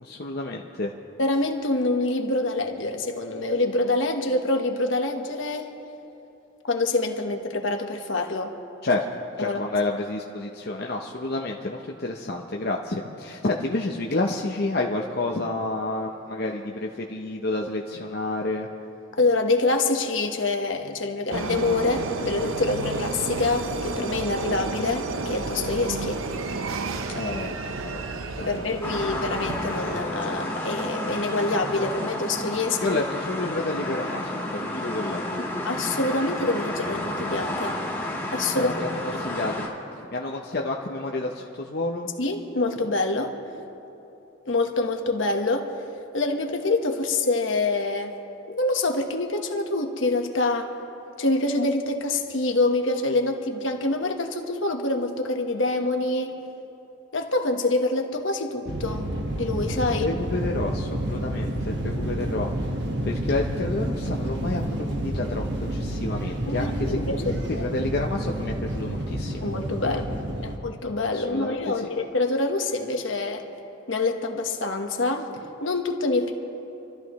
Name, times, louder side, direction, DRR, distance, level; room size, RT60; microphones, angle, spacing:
voice 1, 0.0-0.9 8.8-9.0 9.4-18.7 27.1-28.5 32.8-35.5 38.5-39.7 40.0-42.1 60.0-62.7 63.0-69.4 69.8-70.0 70.4-70.5 71.1-71.9, left 2 dB, 50° left, 1 dB, 0.7 m, -30 dB
voice 2, 1.2-5.7 6.7-8.5 9.4-9.6 19.2-26.2 28.4-33.0 35.7-37.8 38.3-38.7 39.1-39.2 42.2-43.3 44.5-45.7 46.1-48.2 48.5-50.7 51.2-56.3 57.1-59.1 59.3-60.2 66.5-67.7 69.4-70.0 70.4-73.4 73.9-75.3 75.6-76.3, left 2 dB, 70° left, 3 dB, 1.3 m, -26 dB
sound 1, 21.3-30.0, right 3 dB, 90° right, 0.8 m, -31 dB
sound 2, 28.8-39.7, left 1 dB, 10° left, 2.0 m, -31 dB
sound 3, 58.6-70.6, right 1 dB, 60° right, 1.3 m, -29 dB
28.0 x 13.5 x 3.1 m, 2.9 s
head